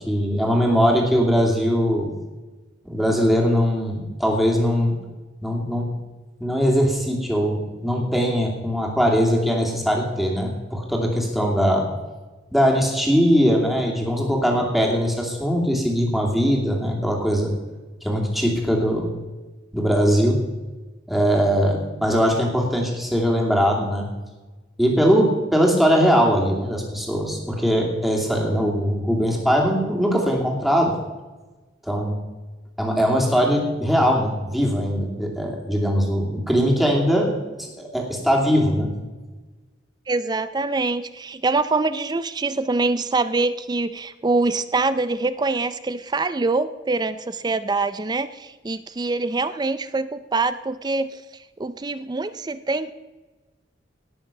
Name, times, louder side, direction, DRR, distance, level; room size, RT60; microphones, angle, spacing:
voice 1, 0.0-2.1 2.8-5.0 5.4-5.9 6.4-11.9 12.5-17.5 18.0-19.1 19.7-20.4 21.1-24.1 24.8-30.9 31.8-32.1 32.8-37.3 37.6-38.9, equal, ahead, -1 dB, 2.6 m, -21 dB
voice 2, 40.1-51.2 51.6-52.9, right 3 dB, 20° right, 13 dB, 0.4 m, -24 dB
18.0 x 6.7 x 5.9 m, 1.2 s
head